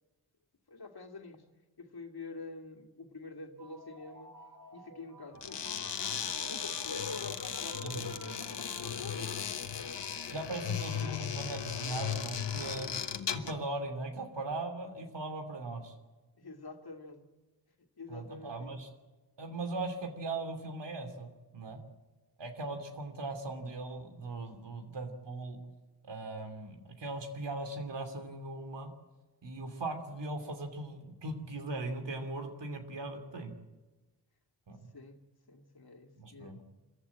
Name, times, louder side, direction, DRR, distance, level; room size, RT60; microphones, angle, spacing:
voice 1, 0.7-1.5 1.8-4.4 4.7-9.5 16.4-17.3 18.0-18.8 34.9-35.2 35.5-36.6, left 3 dB, 60° left, 4 dB, 2.4 m, -47 dB
sound 1, 3.4-10.2, right 2 dB, 45° right, 2.2 m, -54 dB
sound 2, 5.4-13.6, left 7 dB, 80° left, 1.4 m, -36 dB
voice 2, 7.8-8.2 10.3-12.9 13.3-15.9 18.1-18.9 19.4-21.8 22.4-25.6 26.0-28.9 29.4-33.5 34.7-34.9 36.2-36.6, right 2 dB, 80° right, 7 dB, 2.9 m, -39 dB
25.0 x 14.5 x 8.6 m, 1.2 s
cardioid pair, 55°, 42 cm